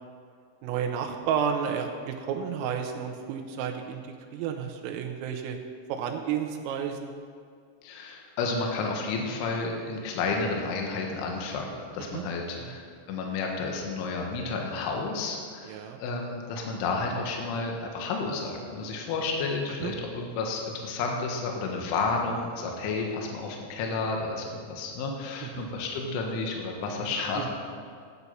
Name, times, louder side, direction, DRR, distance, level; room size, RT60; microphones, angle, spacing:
voice 1, 0.6-5.6 5.9-7.1 12.1-12.2 12.6-12.8 15.7-16.0 19.8-19.9 25.4-25.7 27.0-27.5, right 7 dB, 90° right, 3 dB, 3.4 m, -32 dB
voice 2, 7.8-27.5, left 3 dB, 75° left, 1 dB, 3.7 m, -31 dB
14.5 x 8.2 x 5.6 m, 2.2 s
omnidirectional pair, 5.9 m